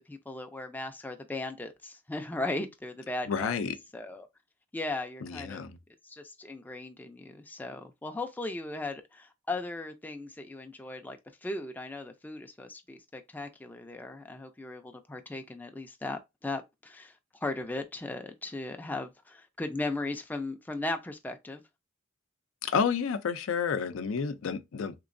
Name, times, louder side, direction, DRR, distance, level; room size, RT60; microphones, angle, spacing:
voice 1, 0.1-3.6 3.9-4.3 4.7-5.7 6.0-21.6, left 2 dB, 10° left, 0.3 m, -37 dB
voice 2, 3.3-3.7 5.2-5.8 22.6-24.9, left 6 dB, 80° left, 0.4 m, -30 dB
3.4 x 3.0 x 2.5 m
head